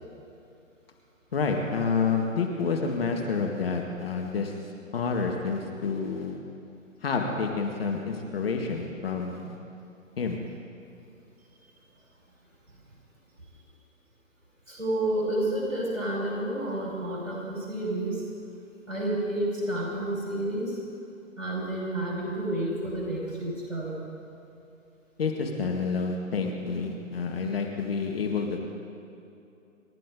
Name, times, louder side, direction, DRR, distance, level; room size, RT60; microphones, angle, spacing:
voice 1, 1.3-4.5 4.9-6.4 7.0-9.6 10.2-10.4 25.2-28.6, left 5 dB, 45° left, 2 dB, 1.8 m, -29 dB
voice 2, 14.7-18.2 18.9-20.7 21.4-24.1, right 1 dB, 70° right, -3 dB, 5.0 m, -30 dB
28.0 x 13.0 x 3.8 m, 2.7 s
figure-of-eight pair, 130°, 40 cm